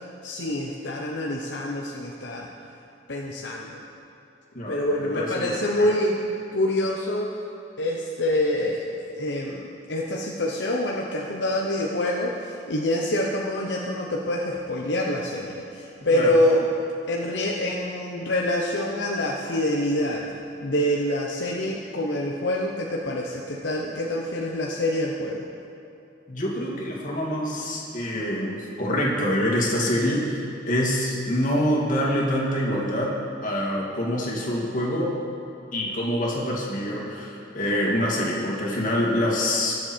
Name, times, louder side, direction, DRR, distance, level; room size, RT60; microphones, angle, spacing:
voice 1, 0.2-2.5 3.1-3.8 4.7-6.2 6.5-7.3 7.8-16.7 17.1-20.3 20.6-25.4, left 1 dB, 75° left, -2 dB, 1.0 m, -26 dB
voice 2, 4.5-5.9 16.1-16.3 26.3-30.4 30.7-33.1 33.4-35.1 35.7-39.7, equal, 45° left, -3 dB, 2.5 m, -25 dB
22.0 x 7.8 x 4.6 m, 2.8 s
head